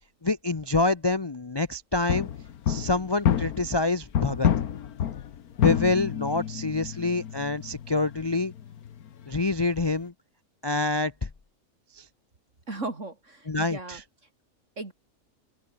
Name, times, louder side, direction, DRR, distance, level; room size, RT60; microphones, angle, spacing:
voice 1, 0.2-2.3 2.7-4.5 5.6-8.5 9.3-10.1 10.6-11.3 11.9-12.0 13.5-14.0, left 3 dB, 30° left, 0.4 m, -26 dB
sound 1, 2.1-3.9 4.1-10.0, left 9 dB, 75° left, 1.6 m, -29 dB
voice 2, 12.7-14.0 14.8-14.9, right 2 dB, 50° right, 3.7 m, -36 dB
omnidirectional pair, 1.6 m